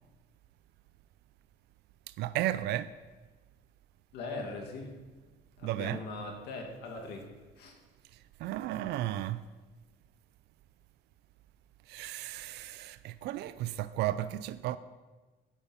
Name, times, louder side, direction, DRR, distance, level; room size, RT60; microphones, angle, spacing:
voice 1, 2.2-2.9 5.6-6.0 8.4-9.4 11.9-14.8, right 14 dB, 80° right, 0.5 m, -34 dB
voice 2, 4.1-4.9 5.6-7.2 7.6-7.7, left 3 dB, 80° left, 2.1 m, -40 dB
8.9 x 8.3 x 5.6 m
cardioid pair, 110°, 17 cm